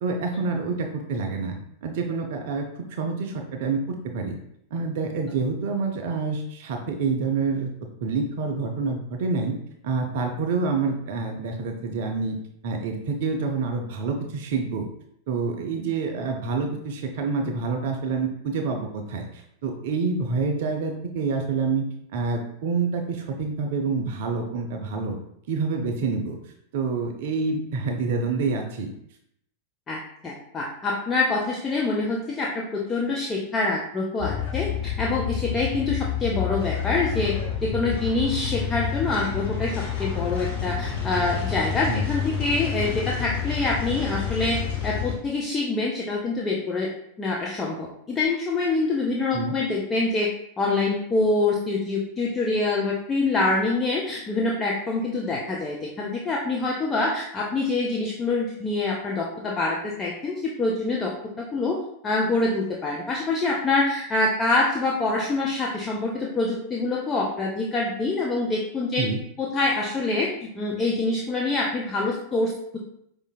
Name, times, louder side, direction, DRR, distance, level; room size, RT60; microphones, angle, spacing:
voice 1, 0.0-4.4 4.7-7.7 8.0-9.5 9.8-12.4 12.6-14.9 15.3-21.8 22.1-25.2 25.5-28.9 41.9-42.0 49.3-49.5 69.0-69.2, right 4 dB, 50° right, 3 dB, 0.4 m, -27 dB
voice 2, 29.9-46.9 47.2-61.8 62.0-69.1 69.4-70.3 70.6-72.8, left 3 dB, 20° left, -1 dB, 0.5 m, -25 dB
sound 1, 34.2-45.2, left 8 dB, 45° left, 1.4 m, -29 dB
4.9 x 2.5 x 2.2 m, 0.74 s
figure-of-eight pair, 90°, 0 cm